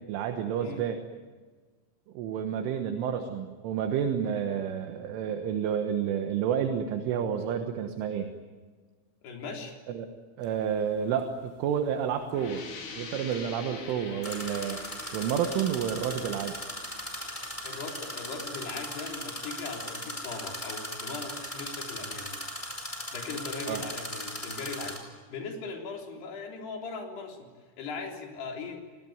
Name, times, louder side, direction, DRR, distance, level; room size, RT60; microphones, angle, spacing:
voice 1, 0.1-1.0 2.2-8.3 9.9-10.1 10.4-12.6 13.0-14.8 15.1-16.6 23.7-23.8, right 8 dB, 75° right, 6 dB, 3.7 m, -30 dB
voice 2, 9.2-9.8 17.6-22.3 23.1-27.5 27.8-28.8, left 4 dB, 55° left, 1 dB, 5.4 m, -39 dB
sound 1, 10.4-10.5 14.2-25.0, left 1 dB, 5° left, 4.2 m, -38 dB
sound 2, 12.3-17.8, left 4 dB, 70° left, 6.5 m, -45 dB
29.5 x 19.5 x 9.5 m, 1.4 s
omnidirectional pair, 6.0 m